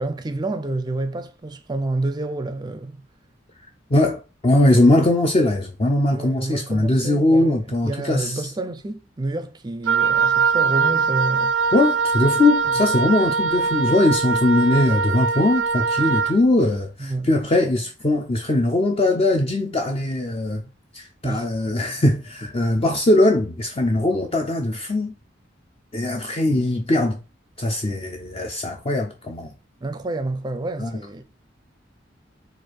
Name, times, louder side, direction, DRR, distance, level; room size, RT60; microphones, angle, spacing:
voice 1, 0.0-3.0 6.1-7.6 7.8-11.5 17.0-17.3 21.2-21.5 29.8-31.2, right 2 dB, 25° right, 0.5 m, -29 dB
voice 2, 3.9-8.5 11.7-20.6 20.9-25.1 25.9-27.2 27.6-29.5 30.8-30.9, left 1 dB, 30° left, 0.6 m, -20 dB
Wind instrument woodwind instrument, 9.9-16.4, right 5 dB, 90° right, 0.4 m, -21 dB
4.5 x 2.5 x 4.5 m
head